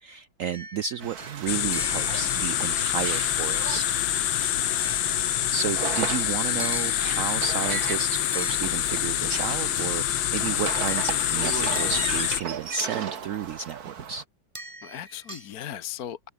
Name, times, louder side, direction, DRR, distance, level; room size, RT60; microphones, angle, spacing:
voice 1, 0.0-3.8 5.5-14.2, right 7 dB, 90° right, 0.7 m, -32 dB
sound 1, 0.5-4.0 4.8-5.9 6.6-7.5 8.3-9.2 9.8-10.4 10.9-12.5 14.5-15.5, right 2 dB, 15° right, 2.7 m, -43 dB
sound 2, 1.0-14.2, right 7 dB, 55° right, 1.9 m, -37 dB
sound 3, 1.5-12.4, left 12 dB, 80° left, 1.6 m, -26 dB
voice 2, 4.7-5.1 14.8-16.3, left 11 dB, 55° left, 1.3 m, -38 dB
omnidirectional pair, 2.1 m